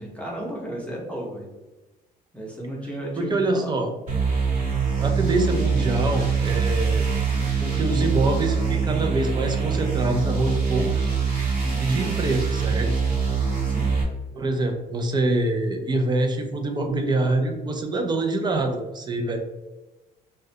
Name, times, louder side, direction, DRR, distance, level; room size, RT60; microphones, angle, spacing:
voice 1, 0.0-1.5 2.3-3.8 11.6-11.9 13.6-13.9, right 1 dB, 5° left, -3 dB, 0.7 m, -34 dB
voice 2, 3.2-3.9 5.0-7.1 7.6-11.1 11.8-12.9 14.3-19.4, right 2 dB, 25° right, 4 dB, 0.3 m, -25 dB
sound 1, 4.1-14.0, right 5 dB, 50° right, 1.0 m, -24 dB
2.3 x 2.1 x 2.7 m, 1.1 s
cardioid pair, 110°, 17 cm